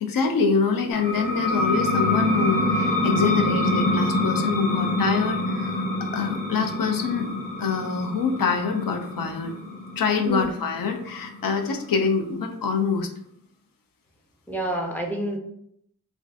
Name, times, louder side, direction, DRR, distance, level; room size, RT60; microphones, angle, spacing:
voice 1, 0.0-7.3 7.6-9.5 10.0-13.1, left 5 dB, 75° left, 5 dB, 0.5 m, -25 dB
sound 1, 0.9-12.2, left 1 dB, 50° left, 1.1 m, -26 dB
voice 2, 14.5-15.4, right 1 dB, 5° left, 0 dB, 0.5 m, -28 dB
2.4 x 2.4 x 3.3 m, 0.73 s
wide cardioid pair, 120°, 34 cm